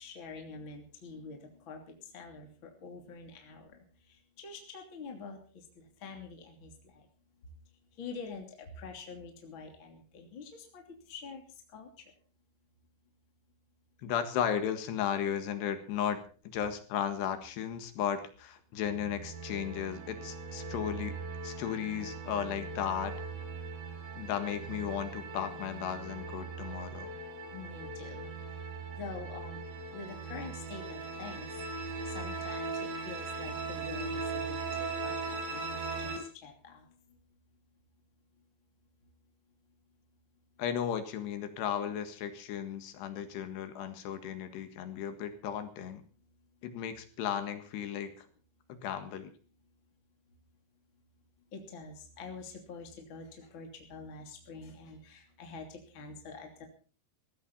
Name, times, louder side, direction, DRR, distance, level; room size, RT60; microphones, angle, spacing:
voice 1, 0.0-1.4 1.7-1.8 2.1-3.6 4.4-5.4 6.0-6.7 8.0-8.4 8.8-10.8 11.1-11.4 11.7-11.9 27.5-28.3 29.0-29.6 29.9-31.5 32.1-34.6 35.0-35.2 35.5-36.1 36.4-36.8 51.5-53.2 53.5-55.7 55.9-56.6, left 4 dB, 30° left, 3 dB, 3.1 m, -45 dB
voice 2, 14.0-16.2 16.5-21.1 21.4-23.1 24.2-27.1 40.6-46.0 46.6-48.3 48.7-49.3, left 9 dB, 75° left, 9 dB, 3.7 m, -35 dB
sound 1, 18.8-36.2, right 4 dB, 90° right, 5.4 m, -39 dB
18.0 x 15.0 x 4.2 m, 0.39 s
omnidirectional pair, 5.0 m